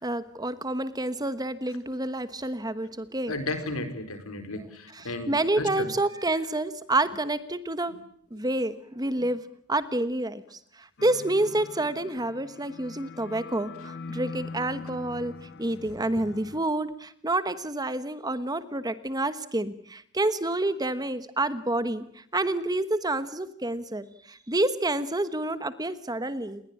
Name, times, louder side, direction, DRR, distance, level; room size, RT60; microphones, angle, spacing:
voice 1, 0.0-3.3 4.9-8.0 8.3-9.4 9.7-15.3 15.6-26.6, right 2 dB, 15° right, 12 dB, 1.2 m, -28 dB
voice 2, 3.3-5.9, left 2 dB, 70° left, 9 dB, 4.6 m, -34 dB
sound 1, 11.0-16.6, left 4 dB, 50° left, 1.3 m, -42 dB
30.0 x 20.5 x 8.6 m, 0.68 s
head